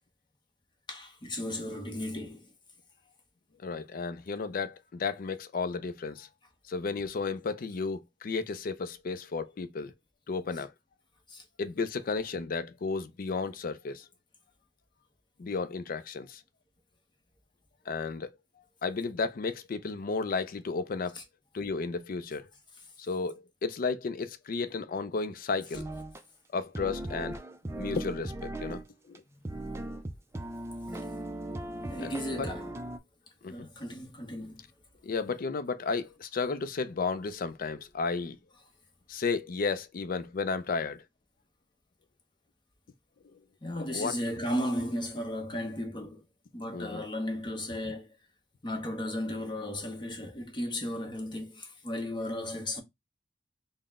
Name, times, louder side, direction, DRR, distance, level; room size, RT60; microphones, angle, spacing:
voice 1, 0.9-2.5 11.3-11.4 21.1-21.2 29.3-29.7 31.8-32.8 33.4-34.6 43.6-46.2 46.5-48.2 48.6-52.8, left 1 dB, 25° left, 0.9 m, -35 dB
voice 2, 3.6-6.3 6.7-9.9 10.3-10.7 11.6-14.0 15.4-16.4 17.9-18.3 18.8-21.2 21.5-22.5 23.0-25.9 26.5-27.4 27.8-28.8 29.1-29.2 32.0-32.5 33.4-33.7 35.0-38.4 39.1-41.0 43.9-44.1 46.7-47.0, left 4 dB, 50° left, 0.4 m, -33 dB
sound 1, 25.7-26.2 26.7-28.8 29.1-29.2 29.4-33.0, right 1 dB, 15° right, 0.4 m, -38 dB
3.9 x 2.1 x 3.5 m
head